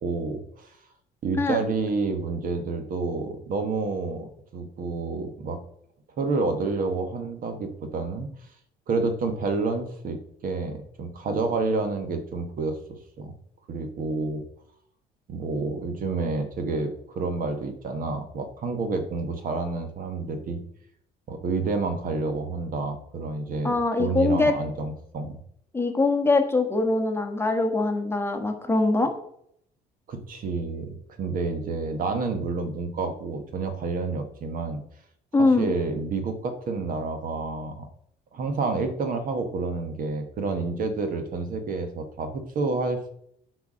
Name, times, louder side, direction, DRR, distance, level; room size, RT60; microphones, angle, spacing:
voice 1, 0.0-0.7 1.2-5.6 6.2-8.3 8.9-13.3 13.7-14.4 15.3-20.6 21.3-23.7 24.0-25.4 30.1-34.8 35.6-37.9 38.3-43.1, right 3 dB, 55° right, 7 dB, 1.4 m, -29 dB
voice 2, 23.6-24.5 25.7-29.1 35.3-35.7, left 3 dB, 15° left, 4 dB, 1.3 m, -23 dB
8.2 x 4.7 x 6.2 m, 0.69 s
cardioid pair, 110°, 17 cm